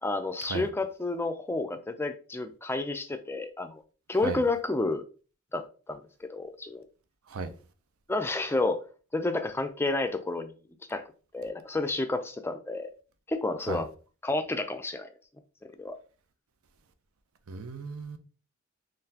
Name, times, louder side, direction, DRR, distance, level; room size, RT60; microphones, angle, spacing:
voice 1, 0.0-3.8 4.1-5.0 5.5-6.0 6.3-6.8 8.1-8.8 9.1-10.5 10.9-11.0 11.3-12.9 13.3-13.9 14.2-15.1 15.8-16.0, left 2 dB, 10° left, 0.3 m, -30 dB
voice 2, 17.5-18.2, right 4 dB, 85° right, 0.6 m, -35 dB
3.9 x 3.1 x 2.8 m
head